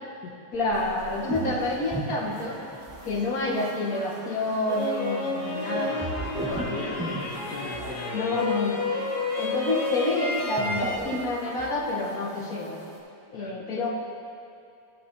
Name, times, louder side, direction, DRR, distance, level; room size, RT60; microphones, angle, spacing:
voice 1, 0.5-2.6 3.0-5.9 6.4-6.7 8.1-8.8 9.4-12.8 13.3-13.9, left 2 dB, 60° left, -3 dB, 1.9 m, -28 dB
sound 1, 0.5-3.4 6.0-8.0 10.4-11.8, right 1 dB, 10° right, 0.7 m, -36 dB
sound 2, 0.7-13.0, right 1 dB, 85° right, 2.4 m, -44 dB
sound 3, 4.7-11.0, left 3 dB, 25° left, 1.3 m, -31 dB
voice 2, 5.7-8.4 13.3-13.6, left 4 dB, 75° left, -4 dB, 1.5 m, -38 dB
17.0 x 8.1 x 2.7 m, 2.5 s
omnidirectional pair, 1.8 m